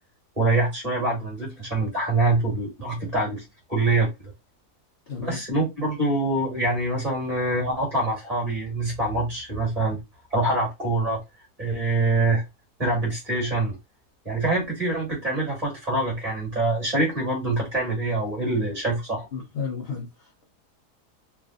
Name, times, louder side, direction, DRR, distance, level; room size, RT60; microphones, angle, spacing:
voice 1, 0.4-3.4 3.7-4.1 5.2-10.0 10.3-11.2 11.6-12.4 12.8-13.8 14.3-19.3, right 2 dB, 25° right, 1.7 m, -25 dB
voice 2, 5.1-5.4 19.3-20.4, left 5 dB, 55° left, 0.7 m, -33 dB
3.3 x 2.4 x 2.4 m
omnidirectional pair, 1.7 m